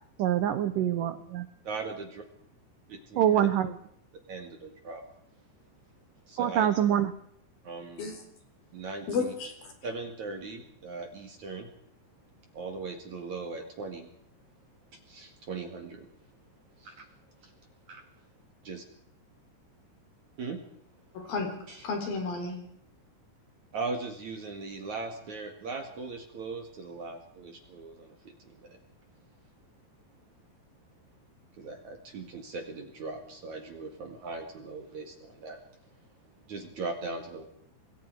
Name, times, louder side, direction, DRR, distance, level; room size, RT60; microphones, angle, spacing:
voice 1, 0.2-1.5 3.2-3.7 6.4-7.1, right 10 dB, 80° right, 10 dB, 1.9 m, -25 dB
voice 2, 1.6-2.2 2.9-3.5 4.3-5.0 6.3-6.7 7.6-8.1 8.7-9.3 9.8-11.7 12.5-14.1 15.1-16.1 16.8-17.1 17.9-18.0 18.6-18.8 20.4-20.6 21.7-21.8 23.7-28.2 28.4-28.8 31.6-35.6 36.5-37.5, right 3 dB, 50° right, 4 dB, 2.9 m, -39 dB
voice 3, 9.1-9.7 21.1-21.6 21.8-22.6, left 4 dB, 55° left, 4 dB, 5.5 m, -32 dB
27.0 x 21.5 x 4.8 m, 0.69 s
omnidirectional pair, 5.3 m